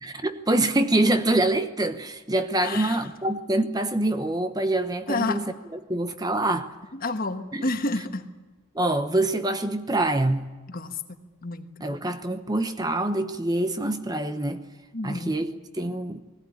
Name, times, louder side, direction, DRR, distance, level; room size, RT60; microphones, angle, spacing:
voice 1, 0.0-5.5 5.9-6.7 7.5-7.7 8.7-10.5 11.8-14.6 15.0-16.2, right 1 dB, 20° right, 0.9 m, -25 dB
voice 2, 2.6-3.1 5.1-5.4 6.9-8.3 10.7-11.0 11.4-11.9 14.9-15.4, left 2 dB, 45° left, 1.4 m, -30 dB
20.5 x 17.0 x 9.9 m
head